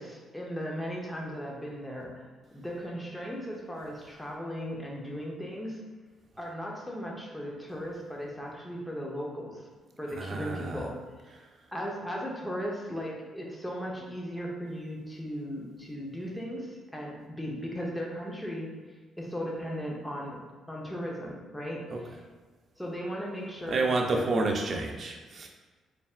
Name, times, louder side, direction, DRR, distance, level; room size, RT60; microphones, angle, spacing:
voice 1, 0.0-5.8 6.4-9.7 10.0-11.4 11.7-18.7 19.2-22.2 22.8-24.2 24.7-24.8, equal, 5° left, -2 dB, 0.8 m, -37 dB
voice 2, 10.2-10.8 21.9-22.0 23.7-25.5, right 2 dB, 50° right, 2 dB, 0.6 m, -29 dB
4.0 x 3.3 x 2.4 m, 1.3 s
cardioid pair, 90°, 0 cm